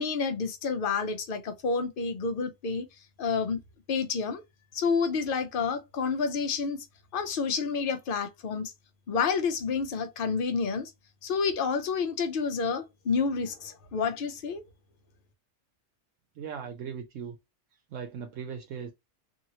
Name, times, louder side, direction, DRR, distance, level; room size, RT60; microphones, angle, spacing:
voice 1, 0.0-2.9 3.2-3.6 3.9-4.4 4.7-6.9 7.1-8.7 9.1-10.9 11.2-14.6, left 5 dB, 55° left, 0.7 m, -29 dB
voice 2, 16.4-17.4 17.9-18.9, right 7 dB, 75° right, 0.9 m, -38 dB
2.8 x 2.7 x 2.8 m
omnidirectional pair, 1.3 m